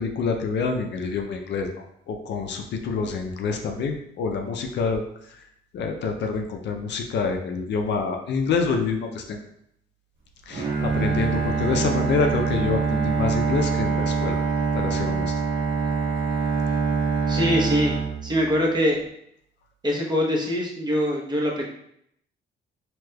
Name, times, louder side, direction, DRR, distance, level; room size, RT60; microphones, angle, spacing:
voice 1, 0.0-1.7 2.1-5.0 5.7-9.4 10.5-14.4 14.7-15.3, left 4 dB, 65° left, 4 dB, 0.5 m, -27 dB
Bowed string instrument, 10.5-18.7, right 5 dB, 75° right, 1.1 m, -24 dB
voice 2, 17.2-19.0 19.8-21.7, equal, 20° right, -2 dB, 0.9 m, -23 dB
3.3 x 2.9 x 2.2 m, 0.71 s
cardioid pair, 80°, 19 cm